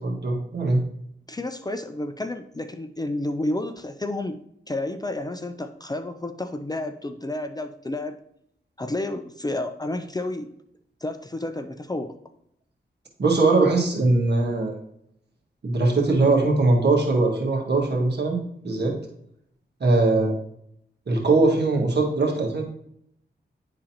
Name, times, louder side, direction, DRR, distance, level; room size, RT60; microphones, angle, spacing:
voice 1, 0.0-0.8 13.2-14.7 15.6-19.0 19.8-20.3 21.1-22.6, right 3 dB, 60° right, -1 dB, 1.6 m, -21 dB
voice 2, 1.3-4.4 4.7-8.2 8.8-10.5 11.0-12.1, left 2 dB, 20° left, 8 dB, 0.4 m, -30 dB
10.0 x 3.8 x 2.9 m, 0.72 s
cardioid pair, 65°, 19 cm